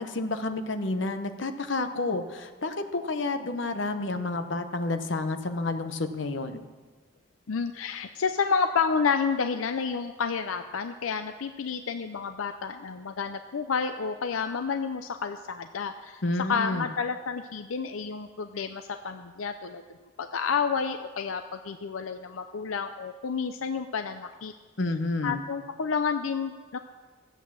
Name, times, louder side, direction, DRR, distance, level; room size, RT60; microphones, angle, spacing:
voice 1, 0.0-6.6 16.2-16.9 24.8-25.4, left 2 dB, 65° left, 7 dB, 0.9 m, -30 dB
voice 2, 7.5-16.2 16.5-19.8 20.2-24.5 25.2-26.8, left 5 dB, 90° left, 8 dB, 0.5 m, -30 dB
13.5 x 8.1 x 7.3 m, 1.4 s
head